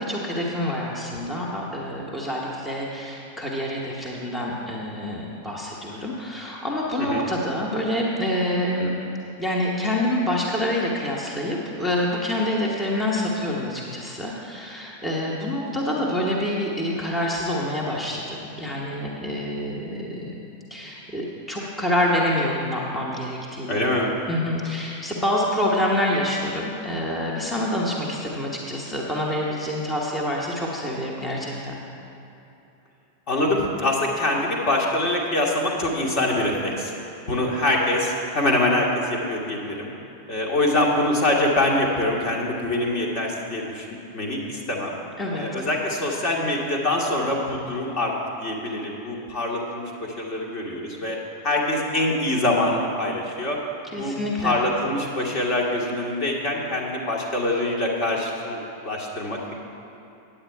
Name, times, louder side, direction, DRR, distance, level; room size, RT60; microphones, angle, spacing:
voice 1, 0.0-8.9 9.4-20.4 20.7-23.8 24.3-31.8 45.2-45.5 53.9-54.6, left 1 dB, 10° left, -3 dB, 1.2 m, -27 dB
voice 2, 7.0-7.3 23.7-24.2 33.3-36.9 37.3-39.9 40.3-44.9 45.4-48.1 48.4-51.2 51.4-53.6 54.0-54.1 54.4-58.6 58.8-59.5, left 1 dB, 40° left, -2 dB, 1.6 m, -24 dB
9.0 x 8.7 x 4.6 m, 2.9 s
figure-of-eight pair, 90°, 0 cm